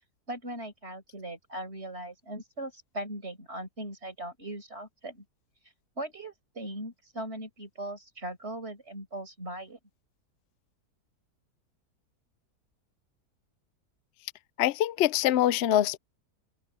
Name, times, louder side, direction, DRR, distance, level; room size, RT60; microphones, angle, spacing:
voice 1, 0.3-5.2 6.0-9.8, right 1 dB, 40° right, 5.7 m, -39 dB
voice 2, 14.6-16.0, left 12 dB, 75° left, 0.6 m, -24 dB
open air
omnidirectional pair, 1.7 m